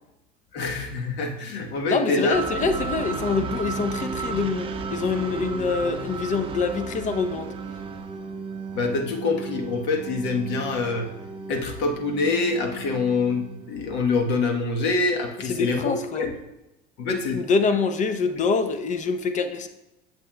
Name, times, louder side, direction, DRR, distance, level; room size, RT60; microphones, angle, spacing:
voice 1, 0.5-2.4 8.7-11.1 11.5-16.3 17.0-17.4 18.4-18.5, left 3 dB, 60° left, 3 dB, 1.2 m, -25 dB
voice 2, 1.9-7.5 15.4-16.3 17.1-19.7, left 4 dB, 40° left, 8 dB, 0.7 m, -25 dB
sound 1, 2.3-14.1, right 4 dB, 25° right, 0.7 m, -34 dB
8.3 x 7.1 x 2.2 m, 0.96 s
supercardioid pair, 95°, 20 cm